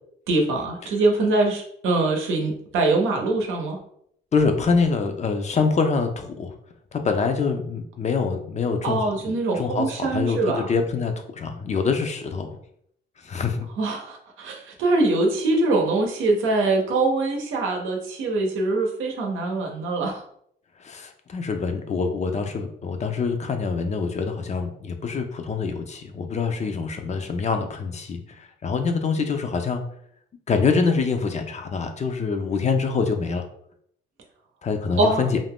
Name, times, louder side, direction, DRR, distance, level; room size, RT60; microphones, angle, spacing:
voice 1, 0.3-3.8 8.8-10.6 13.8-20.2 35.0-35.2, right 2 dB, 85° right, 2 dB, 0.7 m, -23 dB
voice 2, 4.3-6.5 6.9-9.1 9.5-12.6 13.2-13.7 20.8-29.8 30.5-33.5 34.6-35.4, left 5 dB, 35° left, 6 dB, 0.5 m, -25 dB
2.5 x 2.2 x 3.4 m, 0.69 s
cardioid pair, 90°, 20 cm